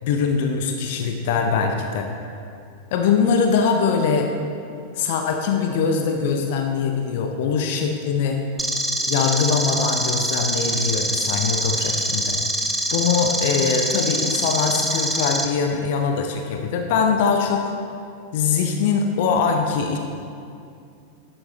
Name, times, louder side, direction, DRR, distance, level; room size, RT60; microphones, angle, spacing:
voice 1, 0.0-2.1 2.9-4.3 4.9-8.4 9.1-12.4 12.9-17.7 18.3-20.0, left 5 dB, 50° left, 4 dB, 0.6 m, -22 dB
sound 1, 8.6-15.4, right 1 dB, 5° right, 0.6 m, -24 dB
10.5 x 8.8 x 3.2 m, 2.5 s
figure-of-eight pair, 90°, 0 cm